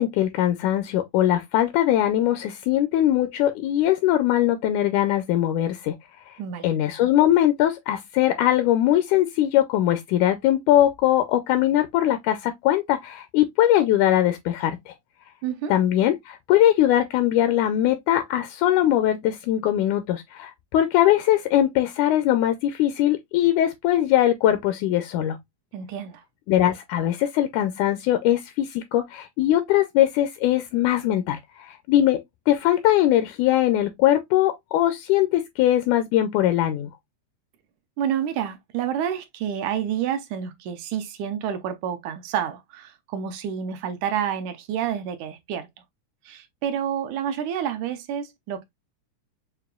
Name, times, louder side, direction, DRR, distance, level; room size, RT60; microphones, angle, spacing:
voice 1, 0.0-6.0 6.6-14.9 15.7-25.4 26.5-32.2 32.5-36.9, left 12 dB, 80° left, 1.9 m, -21 dB
voice 2, 6.4-6.7 15.4-15.7 25.7-26.2 38.0-45.7 46.3-48.6, right 9 dB, 75° right, 2.0 m, -29 dB
6.7 x 2.2 x 2.3 m
omnidirectional pair, 3.6 m